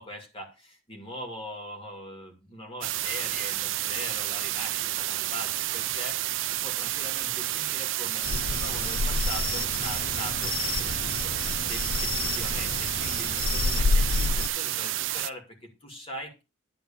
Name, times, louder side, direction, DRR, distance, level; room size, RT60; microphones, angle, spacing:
voice 1, 0.0-16.4, equal, 25° left, 2 dB, 2.5 m, -41 dB
sound 1, 2.8-15.3, right 15 dB, 60° right, 0.5 m, -30 dB
sound 2, 8.2-14.5, left 4 dB, 40° left, 0.4 m, -29 dB
10.5 x 4.2 x 7.2 m, 0.29 s
head